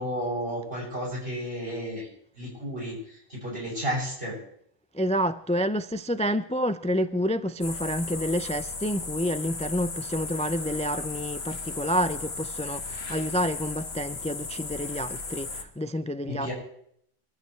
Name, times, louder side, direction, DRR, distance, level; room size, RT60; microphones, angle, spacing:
voice 1, 0.0-2.1 2.4-4.4 16.2-16.5, equal, 75° right, 8.5 m, -32 dB
voice 2, 4.9-16.5, equal, 10° left, 0.3 m, -28 dB
sound 1, 7.6-15.6, left 4 dB, 85° left, 1.6 m, -36 dB
24.5 x 14.5 x 3.3 m
omnidirectional pair, 1.0 m